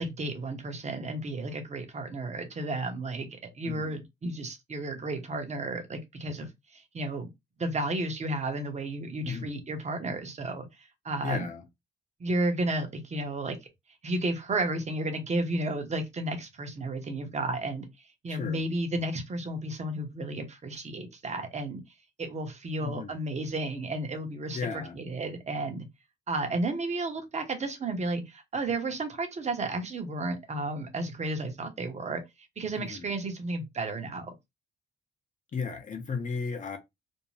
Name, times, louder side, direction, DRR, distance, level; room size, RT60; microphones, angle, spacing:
voice 1, 0.0-7.3 7.6-11.5 12.2-13.6 14.0-21.8 22.2-25.9 26.3-32.2 32.6-34.3, right 2 dB, 35° right, 0.9 m, -33 dB
voice 2, 3.6-4.0 9.2-9.5 11.2-11.6 18.3-18.6 22.8-23.1 24.5-25.0 32.8-33.1 35.5-36.8, left 5 dB, 40° left, 0.8 m, -34 dB
2.6 x 2.1 x 3.1 m
cardioid pair, 90°, 20 cm